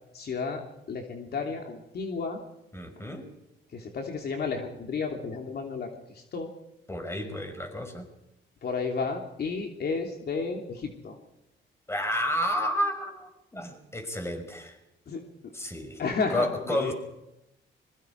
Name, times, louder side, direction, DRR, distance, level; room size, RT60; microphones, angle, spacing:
voice 1, 0.1-2.4 3.7-6.5 8.6-11.2 15.1-15.5 16.0-16.9, left 4 dB, 55° left, 2 dB, 3.1 m, -32 dB
voice 2, 2.7-3.3 6.9-8.1 11.9-14.8 15.5-16.0 16.3-16.9, equal, 15° left, 5 dB, 5.7 m, -31 dB
25.5 x 22.5 x 4.7 m, 0.89 s
cardioid pair, 90°, 20 cm